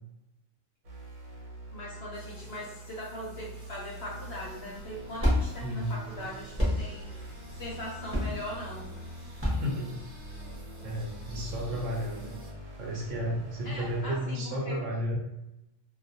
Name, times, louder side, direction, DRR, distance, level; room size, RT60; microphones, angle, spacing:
sound 1, 0.8-14.2, equal, 90° right, 1.2 m, -44 dB
voice 1, 1.7-7.1 7.6-8.9 13.6-14.8, left 1 dB, 65° left, -4 dB, 0.6 m, -40 dB
sound 2, 2.1-12.5, equal, 10° left, 0.8 m, -56 dB
sound 3, 4.7-10.6, left 1 dB, 15° right, 0.5 m, -31 dB
voice 2, 5.6-5.9 9.5-10.0 10.8-12.3 12.8-15.2, equal, 70° right, -1 dB, 0.9 m, -33 dB
2.3 x 2.2 x 2.6 m, 0.92 s
omnidirectional pair, 1.4 m